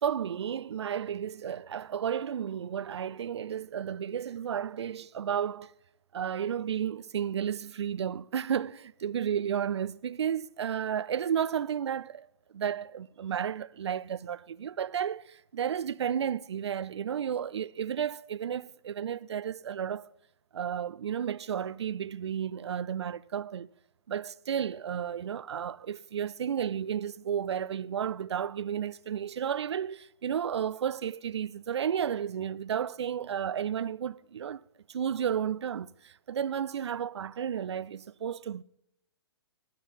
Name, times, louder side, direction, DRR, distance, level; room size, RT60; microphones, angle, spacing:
voice 1, 0.0-5.7 6.1-12.3 12.5-20.1 20.5-23.7 24.1-34.6 34.9-38.6, right 8 dB, 80° right, 0.4 m, -32 dB
18.5 x 9.3 x 4.1 m
hypercardioid pair, 125°, 14 cm